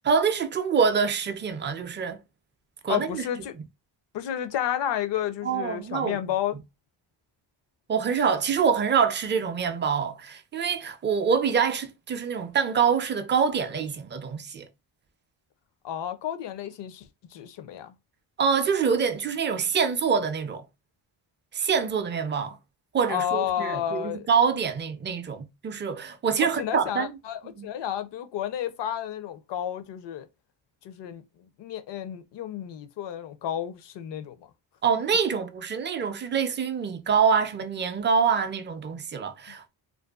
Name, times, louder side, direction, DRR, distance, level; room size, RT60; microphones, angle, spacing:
voice 1, 0.0-2.2 2.8-3.3 5.4-6.2 7.9-14.7 18.4-20.6 21.5-22.6 22.9-27.2 27.4-27.7 34.8-39.7, right 6 dB, 25° right, 0.4 m, -25 dB
voice 2, 2.9-3.5 4.1-6.6 15.8-17.9 23.1-24.3 26.4-30.3 30.8-34.4, left 10 dB, 60° left, 0.6 m, -31 dB
2.6 x 2.2 x 2.3 m
cardioid pair, 80°, 49 cm